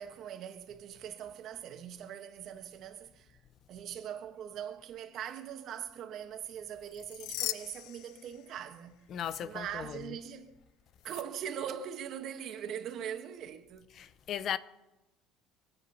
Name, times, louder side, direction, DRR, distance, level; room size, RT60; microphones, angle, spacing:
voice 1, 0.0-3.4 3.7-9.0 9.4-10.5 11.0-13.9, right 9 dB, 50° right, 1.7 m, -41 dB
Perc Slide Charged, 6.8-8.8 9.2-9.4 11.0-11.2, left 17 dB, 70° left, 0.5 m, -40 dB
voice 2, 9.1-9.6 14.0-14.6, left 9 dB, 45° left, 0.8 m, -35 dB
24.5 x 9.0 x 5.7 m
cardioid pair, 130°, 0 cm